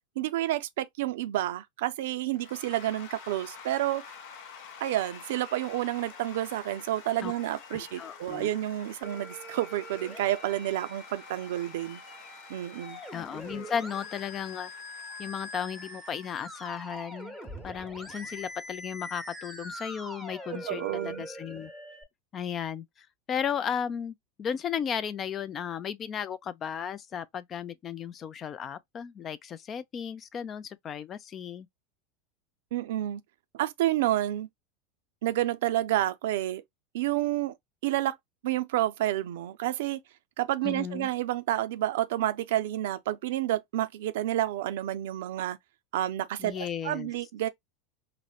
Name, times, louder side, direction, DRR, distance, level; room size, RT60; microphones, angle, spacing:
voice 1, 0.2-4.0 4.8-12.0 12.5-13.0 20.5-21.3 32.7-33.2 33.5-34.5 35.2-36.6 36.9-37.5 37.8-38.2 38.4-40.0 40.4-45.6 45.9-47.5, right 14 dB, 75° right, 0.4 m, -29 dB
Cheering / Applause / Crowd, 2.3-18.0, left 6 dB, 65° left, 0.8 m, -49 dB
voice 2, 7.7-8.5 13.1-14.7 15.2-17.4 17.6-21.7 22.3-31.7 40.6-41.1 46.4-47.1, left 8 dB, 35° left, 0.4 m, -35 dB
Musical instrument, 9.0-22.0, equal, 5° left, 0.9 m, -43 dB
4.0 x 2.1 x 2.3 m
hypercardioid pair, 105°, 0 cm